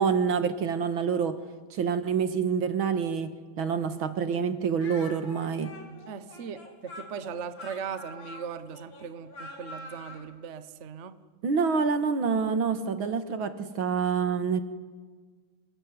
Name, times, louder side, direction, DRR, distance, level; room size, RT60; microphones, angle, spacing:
voice 1, 0.0-1.4 1.7-3.3 3.6-5.7 11.4-14.6, right 6 dB, 80° right, 10 dB, 2.4 m, -27 dB
Speech, 4.8-10.3, left 2 dB, 65° left, 4.3 m, -45 dB
voice 2, 6.1-11.1, right 6 dB, 40° right, 12 dB, 1.2 m, -39 dB
28.5 x 21.5 x 9.6 m, 1.5 s
omnidirectional pair, 2.2 m